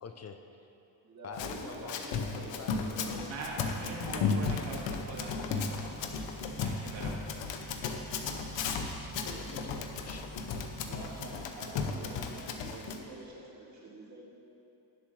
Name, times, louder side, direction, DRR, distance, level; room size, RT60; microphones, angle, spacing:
voice 1, 0.0-0.4 1.2-2.1 2.3-3.2 8.3-9.7 10.0-10.4, left 5 dB, 35° left, 6 dB, 0.6 m, -47 dB
voice 2, 1.0-4.3 9.2-9.7 10.9-14.2, right 2 dB, 40° right, -2 dB, 2.1 m, -48 dB
Run, 1.3-13.0, left 5 dB, 80° left, 1.0 m, -35 dB
voice 3, 3.0-5.8 6.5-7.2, right 3 dB, 80° right, -3 dB, 2.3 m, -42 dB
sound 1, 4.3-11.3, right 4 dB, ahead, 1.5 m, -49 dB
18.5 x 7.3 x 3.3 m, 2.8 s
cardioid pair, 125°, 44 cm